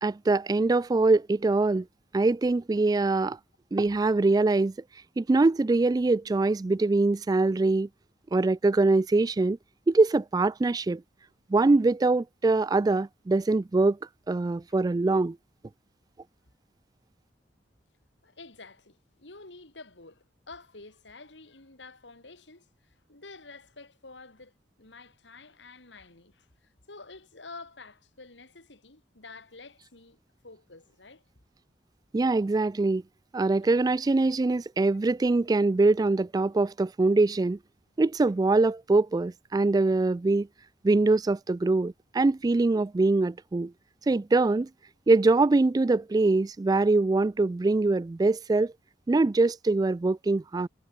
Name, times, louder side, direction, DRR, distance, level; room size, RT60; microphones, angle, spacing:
voice 1, 0.0-1.9 2.1-3.4 3.7-4.7 5.2-7.9 8.3-9.6 9.9-11.0 11.5-14.0 14.3-15.4 32.1-33.0 33.3-37.6 38.0-40.5 40.8-43.7 44.1-44.7 45.1-48.7 49.1-50.7, right 3 dB, 20° right, 0.3 m, -23 dB
voice 2, 18.2-30.2 30.4-31.2 33.6-33.7, left 3 dB, 85° left, 3.3 m, -49 dB
head